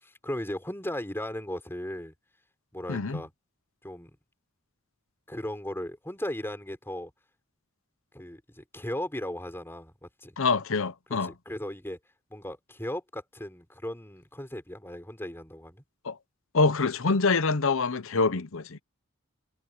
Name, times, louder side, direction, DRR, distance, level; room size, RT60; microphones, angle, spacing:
voice 1, 0.0-2.1 2.7-3.3 3.8-4.2 5.3-7.1 8.1-10.4 11.2-12.0 12.3-15.8, left 1 dB, 10° left, 4.2 m, -37 dB
voice 2, 2.9-3.2 10.4-11.3 16.0-16.2 16.5-18.8, left 4 dB, 65° left, 0.8 m, -25 dB
head